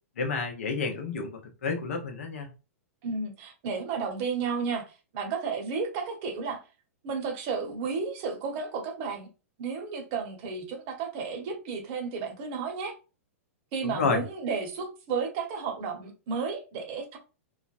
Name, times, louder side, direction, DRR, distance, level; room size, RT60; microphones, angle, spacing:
voice 1, 0.2-2.5 13.8-14.2, left 4 dB, 65° left, 0.7 m, -30 dB
voice 2, 3.0-4.8 5.1-6.6 7.0-9.3 9.6-12.9 13.7-17.2, right 5 dB, 45° right, 0.9 m, -32 dB
3.2 x 2.1 x 2.5 m
figure-of-eight pair, 100°, 8 cm